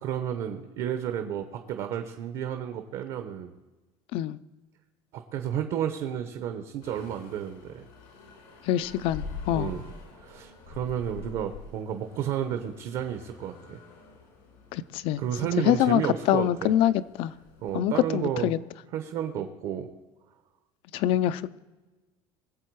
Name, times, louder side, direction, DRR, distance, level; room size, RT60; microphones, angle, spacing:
voice 1, 0.0-3.5 5.1-7.9 9.5-9.8 10.2-13.8 15.2-16.7 17.6-18.5 18.9-19.9, right 9 dB, 50° right, 7 dB, 0.9 m, -32 dB
sound 1, 6.8-17.8, left 4 dB, 90° left, 4.6 m, -46 dB
voice 2, 8.6-9.7 14.7-15.2 15.6-17.3 17.7-18.6 20.9-21.6, left 12 dB, 55° left, 17 dB, 0.5 m, -25 dB
21.5 x 7.7 x 4.7 m, 1.2 s
cardioid pair, 175°, 12 cm